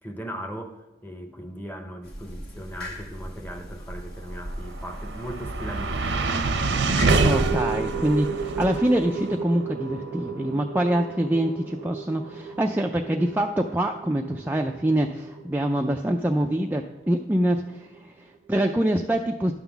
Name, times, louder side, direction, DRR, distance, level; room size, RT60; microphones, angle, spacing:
voice 1, 0.0-6.3, equal, 10° left, 6 dB, 0.8 m, -38 dB
sound 1, 2.0-7.6, equal, 60° left, 1.3 m, -38 dB
sound 2, 4.5-16.9, right 3 dB, 90° right, 0.8 m, -28 dB
voice 2, 7.2-19.5, right 1 dB, 10° right, 2 dB, 0.3 m, -25 dB
11.0 x 3.8 x 7.0 m, 1.1 s
head